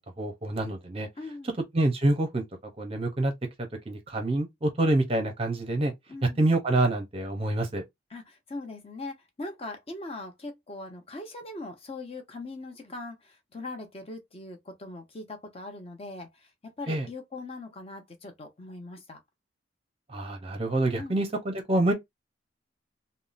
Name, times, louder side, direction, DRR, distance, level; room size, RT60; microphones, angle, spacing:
voice 1, 0.2-1.1 1.7-2.4 2.8-3.3 3.9-5.9 6.2-7.8 16.9-17.1 20.1-21.9, right 2 dB, 30° right, 0.6 m, -26 dB
voice 2, 1.2-1.6 6.1-6.4 8.1-19.2 21.0-21.2, left 2 dB, 30° left, 0.8 m, -41 dB
3.5 x 2.1 x 2.5 m
head